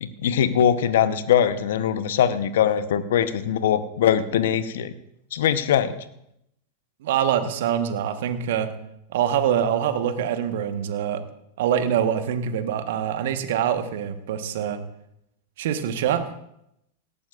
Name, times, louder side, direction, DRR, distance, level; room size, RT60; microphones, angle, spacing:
voice 1, 0.0-4.9 5.3-6.0, left 9 dB, 70° left, 12 dB, 0.9 m, -21 dB
voice 2, 7.0-8.7 9.1-11.2 11.6-14.8 15.6-16.3, right 9 dB, 65° right, 9 dB, 1.2 m, -24 dB
18.0 x 14.0 x 2.5 m, 0.78 s
hypercardioid pair, 95°, 0 cm